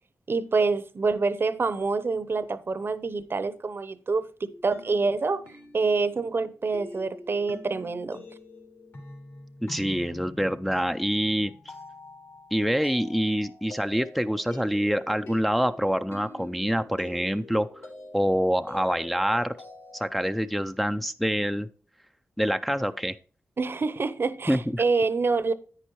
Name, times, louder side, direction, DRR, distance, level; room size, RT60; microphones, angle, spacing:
voice 1, 0.3-5.4 5.7-8.2 23.6-25.5, right 4 dB, 50° right, 0.7 m, -26 dB
sound 1, 4.4-20.3, left 2 dB, 60° left, 3.1 m, -45 dB
voice 2, 9.6-11.5 12.5-17.7 18.1-19.6 19.9-21.7 22.4-23.2 24.5-24.8, equal, ahead, 0.4 m, -26 dB
9.9 x 9.2 x 3.0 m
wide cardioid pair, 85°, 5 cm